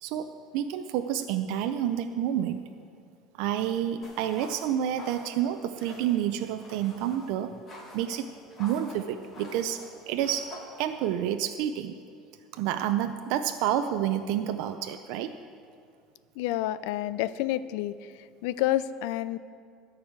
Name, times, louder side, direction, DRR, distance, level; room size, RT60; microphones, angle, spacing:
voice 1, 0.0-2.6 3.3-7.5 7.9-8.3 8.6-10.5 10.8-11.9 12.5-15.4, right 10 dB, 70° right, 8 dB, 0.5 m, -29 dB
sound 1, 4.0-11.2, left 1 dB, 30° left, 2.4 m, -48 dB
voice 2, 16.4-18.1 18.4-19.4, left 14 dB, 80° left, 16 dB, 0.4 m, -29 dB
13.5 x 4.8 x 8.0 m, 2.2 s
cardioid pair, 150°, 0 cm